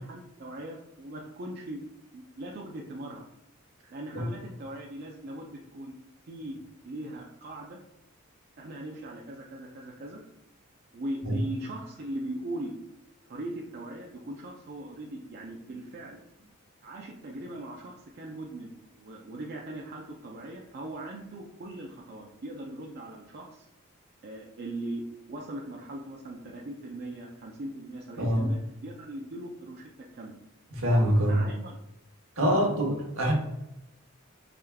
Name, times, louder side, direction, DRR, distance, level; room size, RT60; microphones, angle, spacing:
voice 1, 0.0-1.8 2.1-3.2 3.9-6.0 6.3-7.8 8.6-10.2 10.9-12.8 13.3-16.2 16.8-18.7 18.9-23.6 24.2-30.4 31.2-31.8 32.4-32.6, right 1 dB, 45° right, -1 dB, 0.4 m, -40 dB
voice 2, 28.2-28.5 30.7-31.4 32.4-33.3, equal, 65° right, 0 dB, 1.1 m, -25 dB
4.9 x 3.4 x 2.3 m, 0.93 s
head